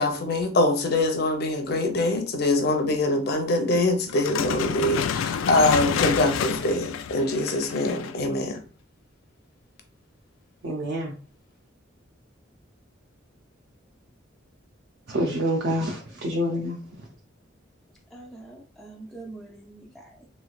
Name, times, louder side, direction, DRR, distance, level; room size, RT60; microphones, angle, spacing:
voice 1, 0.0-8.6, left 2 dB, 55° left, 0.6 m, -24 dB
sound 1, 4.1-8.3, left 7 dB, 90° left, 0.3 m, -28 dB
voice 2, 10.6-11.2 15.1-16.8, equal, 60° right, 0.5 m, -27 dB
voice 3, 18.1-20.2, right 2 dB, ahead, 0.3 m, -44 dB
3.3 x 3.1 x 2.3 m
head